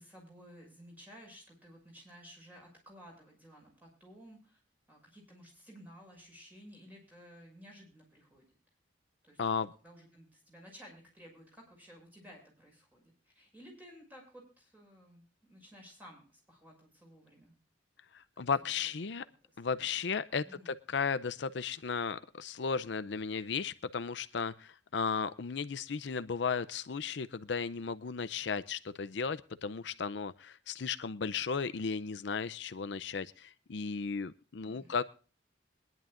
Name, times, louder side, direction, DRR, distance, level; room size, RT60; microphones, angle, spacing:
voice 1, 0.0-4.6 4.9-8.5 9.2-9.4 9.8-17.5 18.3-18.8 20.4-20.7 34.6-35.0, equal, 10° right, 0 dB, 6.1 m, -55 dB
voice 2, 9.4-9.7 18.1-19.2 19.6-35.0, left 5 dB, 65° left, 13 dB, 0.5 m, -35 dB
22.5 x 11.0 x 2.5 m, 0.37 s
head